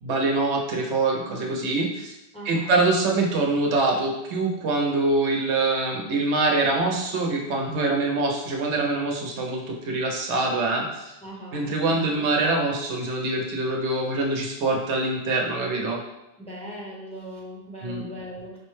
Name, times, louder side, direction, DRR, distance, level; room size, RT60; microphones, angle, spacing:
voice 1, 0.0-2.1 2.4-11.1 11.5-16.0 17.8-18.0, right 2 dB, 85° right, 0 dB, 1.0 m, -24 dB
voice 2, 2.3-2.8 11.2-12.3 16.4-18.6, equal, 5° left, -5 dB, 0.7 m, -39 dB
4.9 x 2.1 x 3.1 m, 0.92 s
omnidirectional pair, 1.1 m